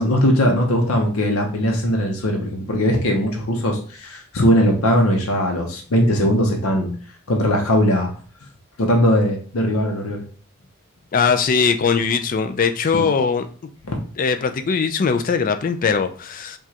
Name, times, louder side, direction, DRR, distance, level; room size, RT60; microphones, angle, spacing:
voice 1, 0.0-6.9 7.3-8.1 8.8-10.2 12.9-13.0 13.9-14.0, equal, 90° left, 1 dB, 0.7 m, -19 dB
voice 2, 11.1-13.5 14.2-16.6, left 5 dB, 40° left, 8 dB, 0.4 m, -20 dB
4.7 x 2.3 x 2.8 m, 0.41 s
head